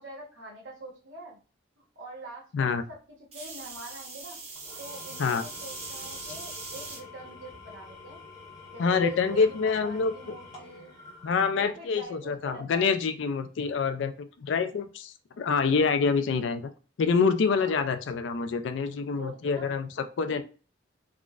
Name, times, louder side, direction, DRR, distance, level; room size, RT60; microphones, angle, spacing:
voice 1, 0.0-1.4 2.0-4.4 4.8-8.2 8.7-11.0 11.5-12.9 17.5-17.8 19.1-19.7 20.3-20.4, right 2 dB, 65° right, -2 dB, 0.9 m, -45 dB
sound 1, 3.3-7.0 7.7-8.1 9.4-9.5, right 3 dB, 35° right, 0.7 m, -41 dB
Engine / Tools, 4.5-12.0, left 4 dB, 20° left, 0.9 m, -48 dB
voice 2, 8.8-10.1 11.2-14.1 14.4-16.7 17.0-19.9 20.2-20.4, left 5 dB, 70° left, 9 dB, 0.3 m, -26 dB
3.6 x 2.0 x 2.3 m, 0.36 s
head